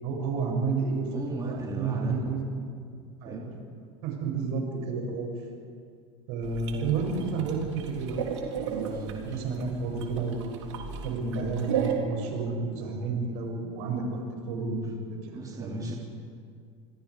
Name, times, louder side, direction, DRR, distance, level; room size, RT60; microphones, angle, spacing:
voice 1, 0.0-2.4 3.2-3.4 4.0-5.3 6.3-8.2 8.6-10.5 10.9-14.9 15.2-15.3 15.6-15.9, right 4 dB, 75° right, 0 dB, 7.7 m, -31 dB
voice 2, 1.1-2.6 3.0-3.5 8.8-9.4 14.8-14.9 15.3-15.9, right 3 dB, 25° right, -2 dB, 3.5 m, -40 dB
sound 1, 6.4-11.9, right 8 dB, 90° right, 3.4 m, -35 dB
28.0 x 22.5 x 5.1 m, 2.2 s
supercardioid pair, 95°, 15 cm